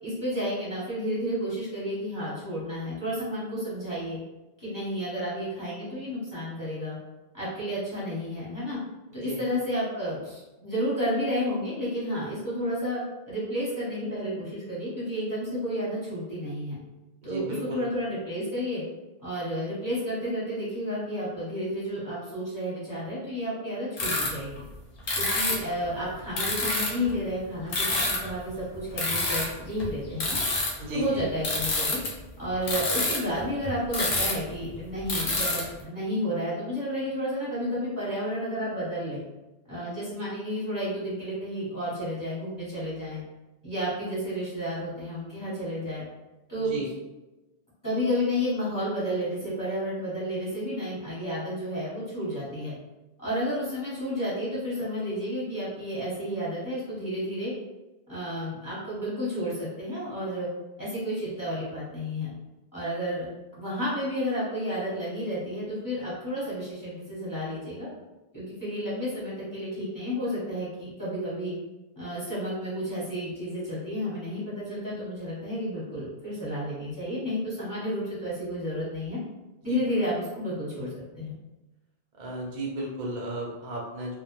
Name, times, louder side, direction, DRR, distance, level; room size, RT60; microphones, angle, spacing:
voice 1, 0.0-4.2 4.6-7.0 7.3-8.8 9.1-16.8 17.2-18.8 19.2-24.5 25.1-30.4 30.9-32.0 32.4-39.2 39.7-43.2 43.6-46.0 46.5-46.7 47.8-52.7 53.2-57.5 58.1-60.5 60.8-62.3 62.7-63.3 63.6-67.9 68.3-71.5 72.0-79.2 79.6-81.3, equal, 20° left, -9 dB, 0.8 m, -31 dB
voice 2, 17.2-17.8 30.8-31.3 46.7-46.9 79.7-79.8 82.2-84.2, right 1 dB, 50° right, -2 dB, 0.5 m, -34 dB
sound 1, 24.0-24.3 24.6-24.7 25.1-25.7 26.4-27.1 27.7-28.3 28.7-32.1 32.5-34.5 34.7-34.8 35.0-35.6, left 2 dB, 55° left, 0.7 m, -27 dB
2.1 x 2.1 x 2.9 m, 1.1 s
omnidirectional pair, 1.2 m